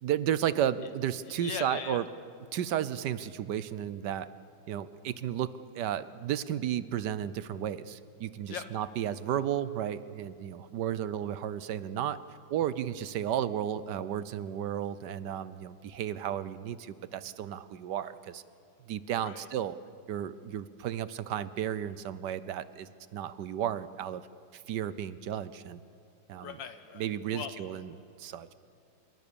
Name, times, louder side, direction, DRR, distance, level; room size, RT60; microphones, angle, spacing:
voice 1, 0.0-2.1 2.5-4.3 4.7-12.2 12.5-18.4 18.9-19.8 20.1-24.2 24.5-25.8 26.3-26.6 26.9-28.5, right 10 dB, 65° right, 15 dB, 1.3 m, -33 dB
voice 2, 1.4-2.0 8.5-8.6 19.2-19.4 26.4-27.1 27.3-27.5, left 7 dB, 75° left, 9 dB, 1.6 m, -39 dB
26.5 x 23.5 x 6.9 m, 2.4 s
omnidirectional pair, 2.1 m